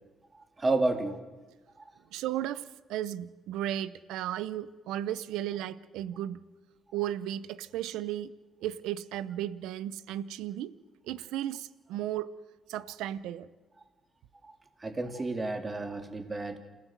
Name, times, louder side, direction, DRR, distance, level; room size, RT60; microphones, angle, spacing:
voice 1, 0.3-1.2 1.8-1.9 14.4-14.5 14.8-16.6, right 2 dB, 30° right, 6 dB, 3.3 m, -31 dB
voice 2, 2.1-2.6 2.9-6.4 6.9-8.3 8.6-10.7 11.1-12.3 12.7-13.5, right 12 dB, 90° right, 17 dB, 0.8 m, -34 dB
28.0 x 16.0 x 7.6 m, 1.3 s
supercardioid pair, 70°, 0 cm